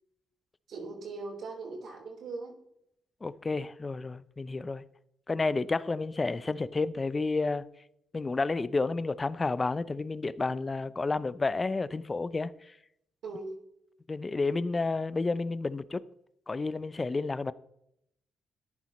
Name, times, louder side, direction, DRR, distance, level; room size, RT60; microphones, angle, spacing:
voice 1, 0.7-2.5 13.2-13.5, right 3 dB, 65° right, 3.8 m, -39 dB
voice 2, 3.2-4.8 5.3-7.6 8.1-12.7 14.1-16.0 16.5-17.5, left 3 dB, 25° left, 0.5 m, -30 dB
13.5 x 10.5 x 3.1 m
cardioid pair, 90°, 0 cm